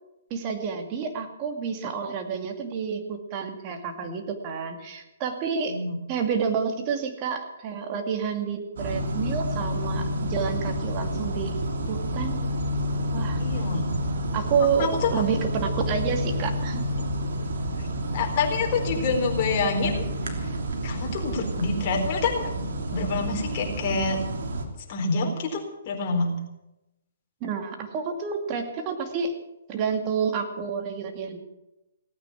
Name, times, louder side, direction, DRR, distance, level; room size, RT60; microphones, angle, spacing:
voice 1, 0.3-5.8 6.1-11.6 11.9-12.5 13.1-13.4 14.3-16.8 27.4-29.3 29.7-31.4, right 6 dB, 30° right, 5 dB, 2.3 m, -29 dB
voice 2, 5.7-6.0 13.4-13.8 14.8-15.2 18.1-20.0 20.4-20.5 20.8-22.5 22.9-24.2 24.9-26.3, left 4 dB, 40° left, 2 dB, 3.9 m, -27 dB
sound 1, 8.8-24.7, equal, 70° right, 2.9 m, -29 dB
17.5 x 9.2 x 8.6 m, 0.93 s
hypercardioid pair, 150°, 0 cm